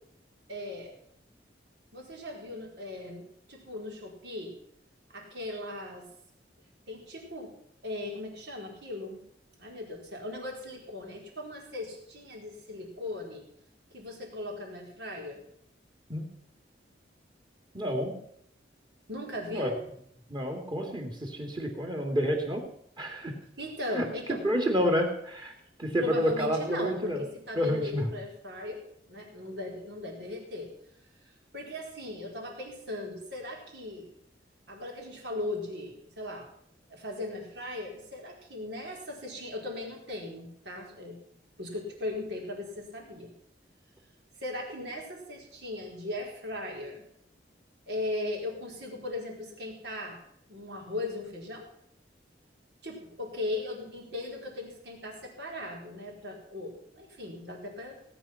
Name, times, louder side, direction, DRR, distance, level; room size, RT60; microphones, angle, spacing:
voice 1, 0.5-0.9 1.9-4.5 5.1-6.1 6.9-7.5 7.8-9.2 9.6-13.4 13.9-15.4 19.1-19.7 23.6-24.4 26.0-28.8 29.1-30.7 31.5-34.1 34.7-36.5 36.9-41.2 41.6-43.3 44.4-47.0 47.9-50.2 50.5-51.7 52.8-58.0, left 2 dB, 65° right, 0 dB, 4.5 m, -38 dB
voice 2, 17.7-18.1 19.5-19.7 20.3-22.6 23.0-23.3 23.9-25.5 25.8-27.2 27.5-28.1, equal, 25° right, 3 dB, 2.8 m, -29 dB
18.0 x 9.4 x 5.9 m, 0.69 s
head